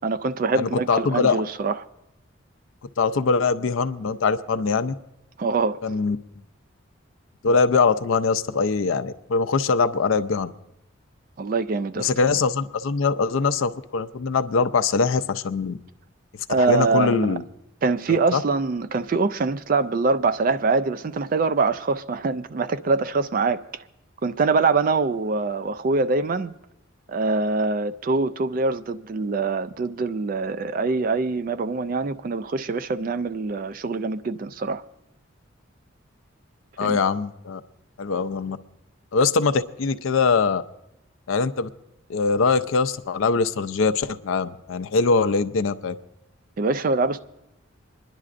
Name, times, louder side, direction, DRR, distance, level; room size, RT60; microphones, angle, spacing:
voice 1, 0.0-1.8 5.4-5.8 11.4-12.1 16.5-17.3 17.8-23.8 24.2-26.5 27.1-34.8 36.8-37.0 46.6-47.2, right 4 dB, 40° right, 0.3 m, -24 dB
voice 2, 0.6-1.4 3.0-4.9 5.8-6.2 7.4-10.5 12.0-15.8 16.6-17.4 18.1-18.4 36.8-37.6 38.0-38.6 39.1-40.6 41.3-41.7 42.1-46.0, left 4 dB, 75° left, 0.5 m, -22 dB
27.5 x 10.5 x 2.5 m
head